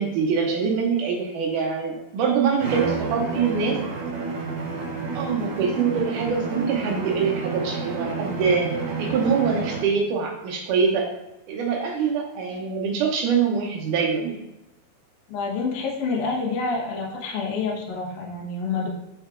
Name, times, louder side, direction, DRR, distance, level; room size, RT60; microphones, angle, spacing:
voice 1, 0.0-3.8 5.1-8.7 9.0-11.1 11.5-14.4, right 6 dB, 85° right, 0 dB, 1.8 m, -24 dB
Bowed string instrument, 2.6-10.0, right 4 dB, 65° right, 3.2 m, -30 dB
voice 2, 15.3-18.9, left 4 dB, 65° left, -2 dB, 2.2 m, -27 dB
6.3 x 6.2 x 2.4 m, 0.90 s
omnidirectional pair, 4.5 m